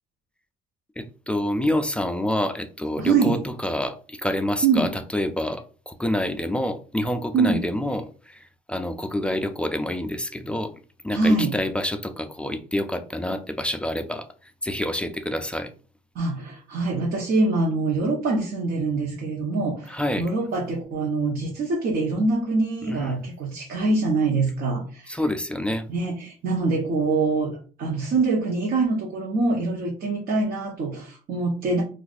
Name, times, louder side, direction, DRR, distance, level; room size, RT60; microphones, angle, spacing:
voice 1, 1.0-10.7 11.0-15.7 19.9-20.3 22.8-23.2 25.1-25.9, left 1 dB, 5° left, 7 dB, 0.3 m, -27 dB
voice 2, 3.0-3.4 4.6-4.9 7.3-7.6 11.1-11.6 16.1-25.2 25.9-27.5 27.8-31.8, right 3 dB, 60° right, -2 dB, 0.9 m, -24 dB
2.5 x 2.4 x 4.0 m, 0.38 s
cardioid pair, 110°, 17 cm